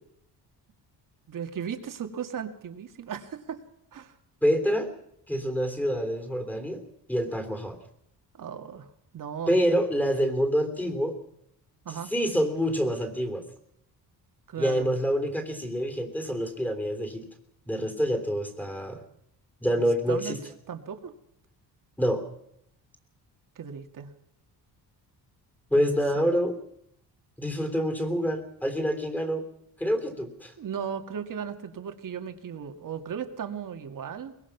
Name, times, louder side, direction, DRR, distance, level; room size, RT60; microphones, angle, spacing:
voice 1, 1.3-3.6 3.9-4.2 8.3-9.6 11.9-12.1 14.5-14.9 19.8-20.4 20.7-21.1 23.6-24.1 25.7-26.3 30.6-34.3, right 8 dB, 50° right, 7 dB, 2.1 m, -36 dB
voice 2, 4.4-4.9 5.3-6.8 7.1-7.8 9.5-11.1 11.9-13.4 14.6-17.2 17.7-19.0 19.6-20.4 22.0-22.2 25.7-26.6 27.4-29.4 29.8-30.5, equal, 5° left, 6 dB, 3.2 m, -27 dB
22.5 x 20.5 x 6.0 m, 0.75 s
cardioid pair, 125°, 40 cm